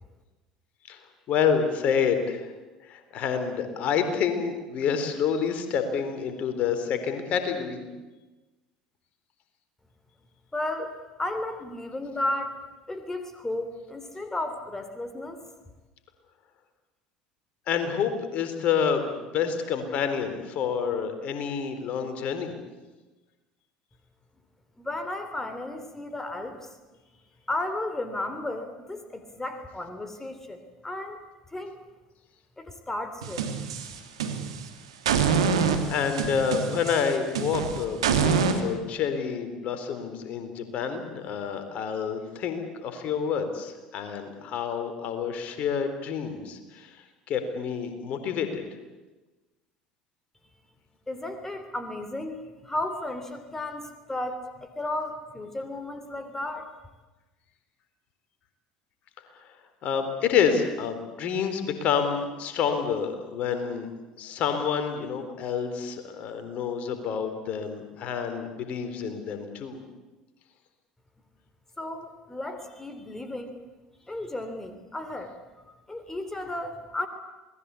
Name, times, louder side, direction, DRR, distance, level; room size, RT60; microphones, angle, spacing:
voice 1, 1.3-2.5 2.8-7.9 17.7-22.5 35.9-47.0 47.3-48.6 59.8-63.9 64.2-69.8, left 7 dB, 50° left, 8 dB, 3.8 m, -28 dB
voice 2, 10.5-10.9 11.2-12.6 12.9-15.4 24.8-26.7 27.5-31.2 31.5-31.8 32.6-33.5 51.1-56.7 71.8-73.6 74.1-75.3 75.7-77.1, left 1 dB, 15° left, 8 dB, 3.3 m, -34 dB
sound 1, 33.2-34.6 35.0-38.6, right 6 dB, 80° right, 2.5 m, -26 dB
27.5 x 20.0 x 8.4 m, 1.2 s
hypercardioid pair, 70°, 3 cm